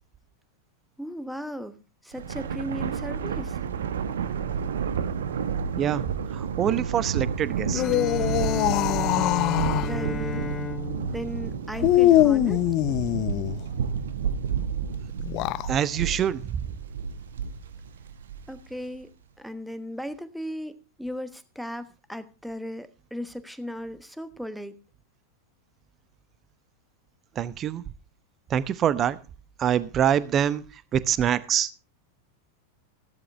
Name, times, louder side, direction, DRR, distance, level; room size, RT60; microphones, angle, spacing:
voice 1, 1.0-3.6 9.8-10.5 11.1-12.6 18.5-19.1 19.4-24.8, equal, ahead, 1.1 m, -36 dB
Thunder, 2.1-18.7, right 7 dB, 65° right, 1.1 m, -31 dB
voice 2, 5.8-7.8 15.7-16.6 27.4-27.8 28.5-29.2 29.6-30.6 30.9-31.7, right 9 dB, 30° right, 0.8 m, -25 dB
sound 1, 7.6-9.9 11.8-13.6 15.2-15.7, left 14 dB, 40° left, 0.6 m, -22 dB
Bowed string instrument, 7.7-12.6, left 6 dB, 15° left, 0.9 m, -35 dB
14.0 x 12.0 x 3.3 m
figure-of-eight pair, 90°, 0 cm